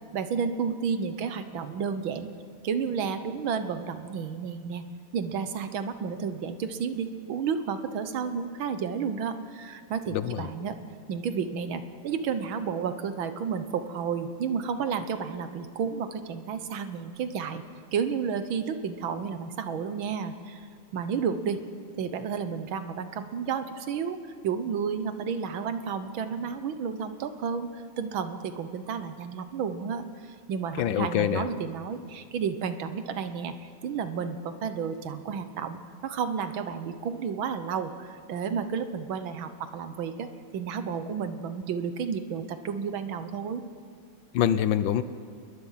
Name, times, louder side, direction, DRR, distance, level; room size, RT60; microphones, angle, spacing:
voice 1, 0.1-2.3 2.6-4.8 5.1-10.8 11.1-17.6 17.9-20.7 20.9-21.6 22.0-33.5 33.8-43.6, right 6 dB, 70° right, 10 dB, 1.8 m, -31 dB
voice 2, 10.1-10.5 30.8-31.4 44.3-45.0, left 10 dB, 70° left, 13 dB, 1.3 m, -25 dB
27.5 x 21.0 x 5.7 m, 2.1 s
omnidirectional pair, 2.3 m